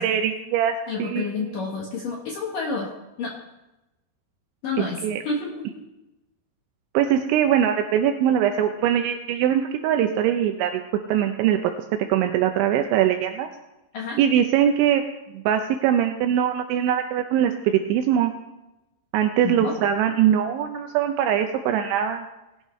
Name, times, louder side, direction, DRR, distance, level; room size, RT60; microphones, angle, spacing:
voice 1, 0.0-0.7 1.0-1.6 5.0-5.2 6.9-10.8 11.1-11.7 12.1-13.5 14.2-15.0 15.3-18.3 19.1-22.3, right 10 dB, 80° right, 5 dB, 2.9 m, -22 dB
voice 2, 0.9-2.9 3.2-3.3 4.6-5.7 13.9-14.2 19.4-19.7, left 4 dB, 70° left, -2 dB, 2.1 m, -29 dB
19.5 x 11.5 x 3.1 m, 0.99 s
omnidirectional pair, 5.5 m